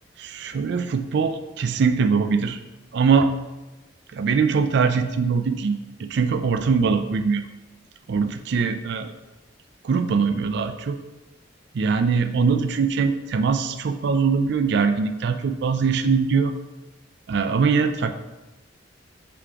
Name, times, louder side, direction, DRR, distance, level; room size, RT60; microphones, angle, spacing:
voice 1, 0.2-2.6 2.9-3.3 4.1-7.5 8.1-9.1 9.8-11.0 11.7-16.5 17.3-18.1, right 5 dB, 65° right, 8 dB, 0.4 m, -22 dB
6.8 x 2.9 x 4.7 m, 1.1 s
head